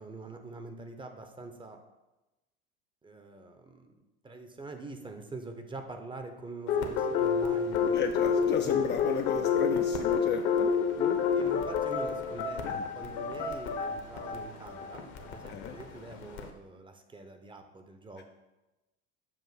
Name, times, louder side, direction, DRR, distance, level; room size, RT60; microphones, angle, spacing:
voice 1, 0.0-1.8 3.0-8.0 8.6-8.8 11.3-18.2, right 3 dB, 15° right, 6 dB, 0.7 m, -45 dB
sound 1, 6.7-16.5, left 6 dB, 60° left, 1.0 m, -29 dB
voice 2, 7.9-11.2 12.3-12.8 15.5-15.8, left 9 dB, 35° left, 5 dB, 0.4 m, -34 dB
7.3 x 2.5 x 5.8 m, 1.0 s
hypercardioid pair, 85°, 34 cm